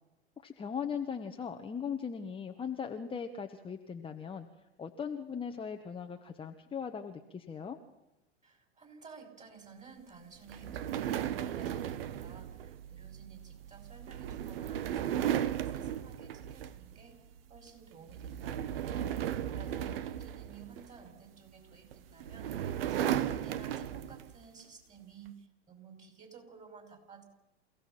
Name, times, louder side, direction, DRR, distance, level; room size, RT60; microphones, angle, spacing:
voice 1, 0.4-4.5 4.8-7.8, left 6 dB, 15° left, 4 dB, 1.3 m, -39 dB
voice 2, 8.4-17.2 17.5-19.1 19.5-27.2, right 6 dB, 20° right, 5 dB, 5.9 m, -54 dB
sound 1, 10.5-17.0 17.4-17.7 18.1-21.1 21.9-24.4, right 10 dB, 60° right, 1.2 m, -36 dB
28.0 x 16.5 x 5.9 m, 0.93 s
figure-of-eight pair, 90°, 33 cm